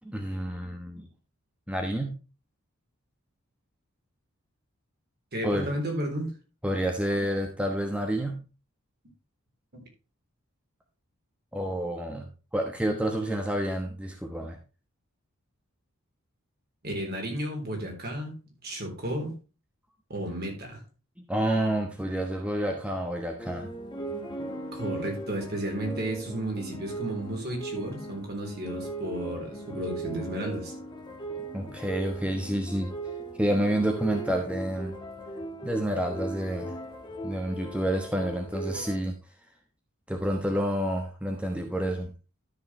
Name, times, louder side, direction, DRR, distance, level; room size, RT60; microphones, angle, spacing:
voice 1, 0.0-1.1 1.7-2.2 5.4-5.7 6.6-8.4 11.5-14.6 21.3-23.7 31.5-32.9 33.4-34.9 35.6-36.8 37.2-39.1 40.1-42.1, right 1 dB, 5° right, 3 dB, 1.1 m, -29 dB
voice 2, 5.3-6.3 9.7-9.9 16.8-19.4 20.1-20.8 24.7-30.7, right 1 dB, 50° right, 1 dB, 3.6 m, -33 dB
sound 1, 23.4-39.0, right 2 dB, 20° left, 1.6 m, -38 dB
12.5 x 6.7 x 3.2 m, 0.33 s
head